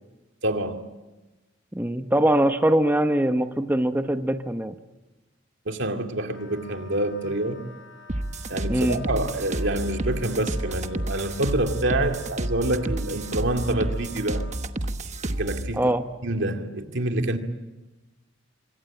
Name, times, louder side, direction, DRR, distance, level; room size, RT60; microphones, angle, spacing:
voice 1, 0.4-0.9 5.7-7.7 8.5-14.4 15.2-15.8 16.2-17.4, right 1 dB, 65° right, 2.2 m, -27 dB
voice 2, 1.7-4.7 8.7-9.0 15.8-16.0, right 1 dB, 10° right, 0.9 m, -22 dB
Wind instrument woodwind instrument, 6.3-14.6, left 2 dB, 70° left, 5.8 m, -49 dB
sound 1, 8.1-15.7, right 1 dB, 35° right, 1.1 m, -30 dB
26.5 x 24.0 x 8.9 m
head